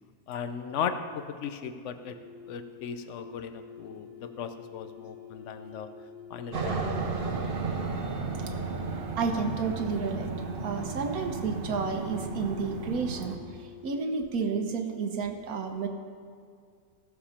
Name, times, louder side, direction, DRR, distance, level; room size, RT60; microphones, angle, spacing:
voice 1, 0.3-2.2 2.4-5.9 6.3-7.2, left 7 dB, 60° left, 9 dB, 0.9 m, -37 dB
sound 1, 1.9-14.6, left 6 dB, 45° left, 1.7 m, -48 dB
Aircraft, 6.5-13.4, right 4 dB, 40° right, 0.9 m, -34 dB
voice 2, 9.2-10.3 10.6-15.9, right 5 dB, 70° right, 5 dB, 1.4 m, -31 dB
15.0 x 6.8 x 5.7 m, 2.2 s
omnidirectional pair, 1.7 m